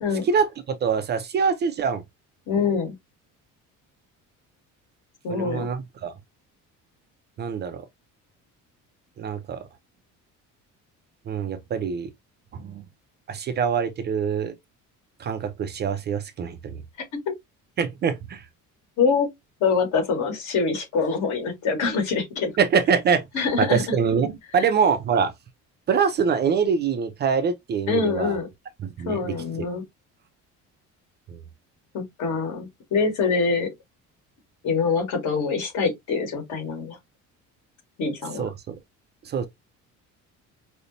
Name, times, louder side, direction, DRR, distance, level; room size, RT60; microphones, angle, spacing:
voice 1, 0.2-2.0 5.3-6.1 7.4-7.9 9.2-9.6 11.3-12.1 12.5-12.8 13.3-14.5 15.2-16.8 17.8-18.5 22.6-23.2 23.6-25.3 25.9-28.4 28.8-29.7 31.3-31.4 38.4-38.7 39.2-39.5, right 6 dB, 35° right, 0.4 m, -24 dB
voice 2, 2.5-2.9 5.2-5.6 19.0-19.3 19.6-22.5 23.3-23.8 27.9-28.5 29.1-29.8 31.9-33.7 34.6-37.0 38.0-38.5, left 5 dB, 65° left, 2.0 m, -24 dB
5.1 x 2.1 x 2.7 m
cardioid pair, 180°, 32 cm